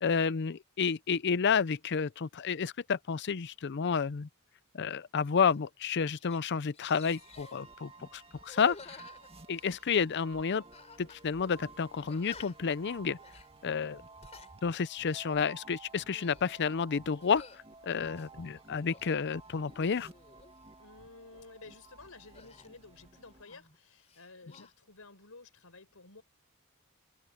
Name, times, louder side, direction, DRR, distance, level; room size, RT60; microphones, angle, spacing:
voice 1, 0.0-4.3 4.7-9.0 9.5-10.6 11.0-13.2 13.6-14.0 14.6-17.4 17.8-20.1, left 6 dB, 50° left, 0.5 m, -30 dB
sound 1, 5.5-5.7 6.0-6.4 6.7-7.6 8.4-10.0 10.7-11.2 11.5-11.6 12.1-12.7 13.2-13.5 14.0-14.5 15.0-15.2 15.9-16.5 17.2-17.6 18.1-19.1 19.6-20.5 22.3-23.8 24.0-24.7, left 3 dB, 30° left, 3.6 m, -52 dB
sound 2, 7.0-23.4, right 3 dB, 25° right, 2.0 m, -54 dB
voice 2, 20.8-26.2, left 3 dB, 75° left, 4.5 m, -53 dB
open air
head